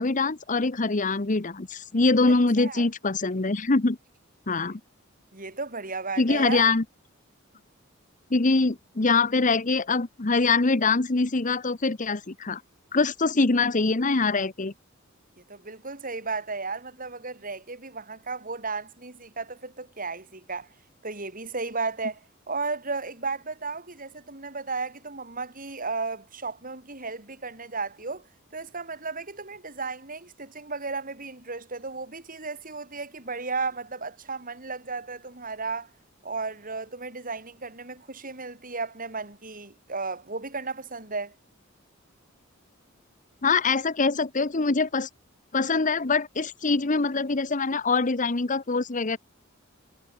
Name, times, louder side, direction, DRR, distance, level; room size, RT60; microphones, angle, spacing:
voice 1, 0.0-4.0 4.5-4.8 6.2-6.8 8.3-12.6 12.9-14.7 43.4-45.1 45.5-49.2, left 3 dB, 40° left, 1.0 m, -24 dB
voice 2, 2.6-2.9 5.3-6.7 15.5-20.7 21.0-22.2 22.5-28.2 28.5-35.9 36.2-41.3, right 4 dB, 40° right, 7.1 m, -34 dB
head